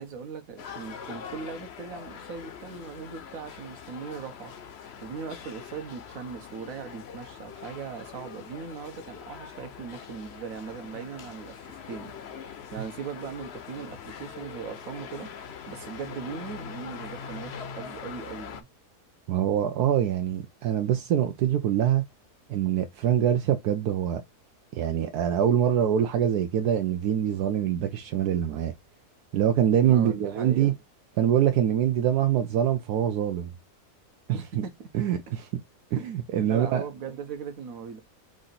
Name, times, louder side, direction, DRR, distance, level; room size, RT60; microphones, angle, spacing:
voice 1, 0.0-4.5 5.0-18.7 29.8-30.8 34.3-34.9 36.0-36.1 36.4-38.0, right 6 dB, 65° right, 1.4 m, -39 dB
sound 1, 0.6-18.6, left 7 dB, 55° left, 0.8 m, -43 dB
voice 2, 19.3-22.0 22.5-24.2 24.7-28.7 29.3-30.7 31.2-33.5 34.9-35.5 35.9-36.8, right 10 dB, 80° right, 1.2 m, -24 dB
4.9 x 2.5 x 4.1 m
omnidirectional pair, 1.6 m